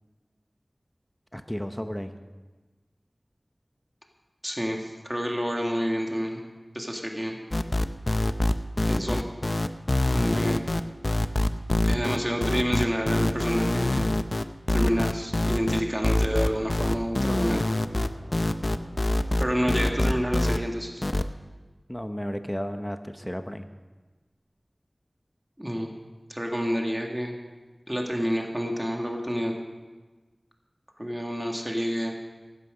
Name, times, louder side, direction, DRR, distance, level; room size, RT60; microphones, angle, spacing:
voice 1, 1.3-2.2 21.9-23.7, equal, 10° left, 8 dB, 1.0 m, -33 dB
voice 2, 4.4-6.4 6.7-7.4 8.9-9.2 10.1-10.6 11.8-14.1 14.7-17.6 19.4-21.0 25.6-25.9 26.3-27.3 27.9-29.5 31.0-32.1, equal, 15° right, 1 dB, 2.0 m, -28 dB
sound 1, 7.5-20.6 21.0-21.2, left 1 dB, 50° left, 0.6 m, -24 dB
sound 2, 16.6-20.6, left 2 dB, 65° left, 3.0 m, -45 dB
16.0 x 12.0 x 5.2 m, 1.3 s
wide cardioid pair, 45°, 0 cm